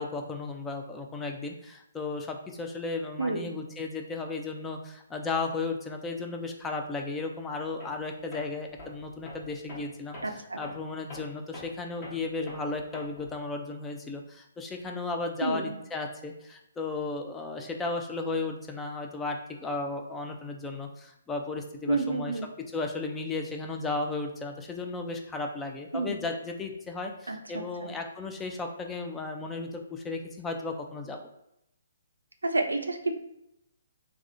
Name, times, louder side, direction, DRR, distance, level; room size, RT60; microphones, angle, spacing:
voice 1, 0.0-10.2 10.6-22.3 22.7-31.2, left 3 dB, 10° left, 3 dB, 0.3 m, -35 dB
voice 2, 3.2-3.5 10.2-10.6 15.4-15.8 21.9-22.5 25.9-26.2 27.3-27.9 32.4-33.1, right 3 dB, 80° right, 5 dB, 0.4 m, -30 dB
Tools, 7.8-8.0 8.3-13.4, left 2 dB, 25° left, 1.0 m, -46 dB
3.4 x 2.1 x 2.5 m, 0.82 s
figure-of-eight pair, 130°, 0 cm